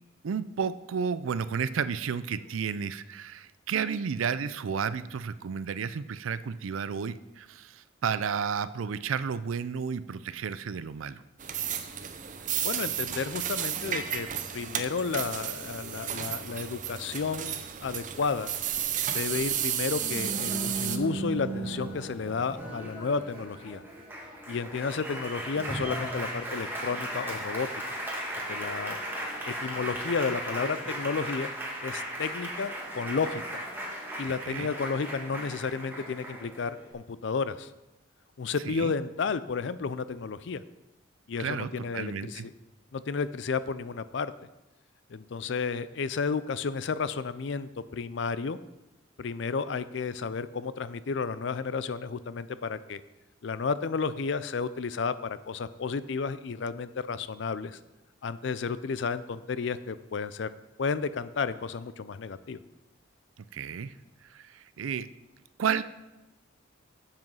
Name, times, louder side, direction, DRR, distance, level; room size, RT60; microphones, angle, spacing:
voice 1, 0.2-11.2 34.5-34.7 38.6-38.9 41.4-42.5 63.4-63.9 64.2-65.1 65.6-65.8, right 6 dB, 80° right, 15 dB, 0.4 m, -32 dB
sound 1, 11.4-21.0, right 9 dB, 40° right, 0.6 m, -33 dB
voice 2, 12.6-14.3 14.5-18.5 19.1-23.8 24.5-27.7 28.5-29.0 29.5-31.5 31.8-33.6 34.2-37.7 38.4-40.6 41.3-42.5 42.9-44.3 45.1-48.6 49.2-53.0 53.4-57.8 58.2-60.5 60.8-62.6, left 5 dB, 60° left, 15 dB, 0.4 m, -32 dB
Applause, 19.9-36.9, right 1 dB, 10° right, 1.7 m, -36 dB
7.7 x 7.5 x 5.6 m, 0.99 s
head